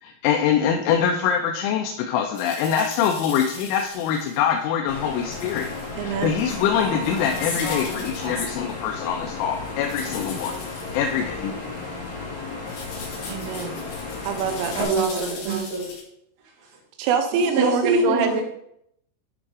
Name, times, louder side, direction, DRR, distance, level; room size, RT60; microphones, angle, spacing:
voice 1, 0.0-5.7 6.0-10.5 10.9-11.8, left 8 dB, 80° left, 3 dB, 3.0 m, -24 dB
sound 1, 2.3-4.5 5.3-5.9 6.2-8.6 9.8-11.1 12.7-16.0, left 4 dB, 65° left, 3.5 m, -39 dB
sound 2, 4.9-14.8, left 3 dB, 45° left, 3.0 m, -33 dB
voice 2, 6.0-6.4 13.3-13.8 14.2-15.4 17.0-18.4, right 6 dB, 85° right, 7 dB, 3.3 m, -25 dB
voice 3, 14.7-16.0 16.6-16.7 17.3-18.4, right 2 dB, 55° right, -6 dB, 2.3 m, -24 dB
10.0 x 3.5 x 4.8 m, 0.75 s
omnidirectional pair, 5.7 m